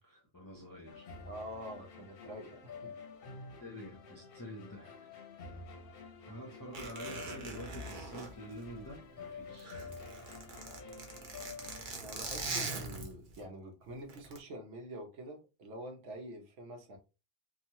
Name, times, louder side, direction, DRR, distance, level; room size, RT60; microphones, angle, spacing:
voice 1, 0.0-1.1 3.6-5.0 6.3-9.8, equal, 30° left, 0.4 m, -47 dB
sound 1, 0.9-11.9, left 4 dB, 60° left, 0.7 m, -49 dB
voice 2, 1.3-2.9 12.0-17.0, right 1 dB, 80° right, 1.1 m, -46 dB
Zipper (clothing), 6.7-9.1 9.5-13.4 14.1-14.4, right 3 dB, 50° right, 0.7 m, -42 dB
2.9 x 2.3 x 2.7 m
omnidirectional pair, 1.2 m